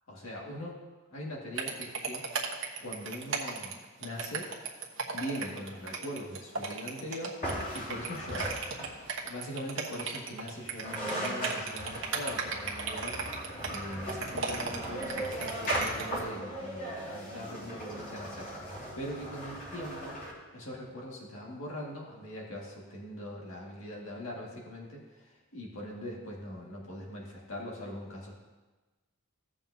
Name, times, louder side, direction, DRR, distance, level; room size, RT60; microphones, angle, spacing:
voice 1, 0.1-0.8 1.1-2.2 2.8-4.5 5.1-7.4 7.7-8.5 9.2-13.2 13.7-20.2 20.5-28.4, equal, 65° left, -3 dB, 2.0 m, -41 dB
sound 1, 1.6-16.2, right 5 dB, 55° right, 1.2 m, -36 dB
sound 2, 7.4-9.2 10.5-10.6 10.8-20.3, equal, 35° left, 3.6 m, -38 dB
16.0 x 7.0 x 2.8 m, 1.2 s
head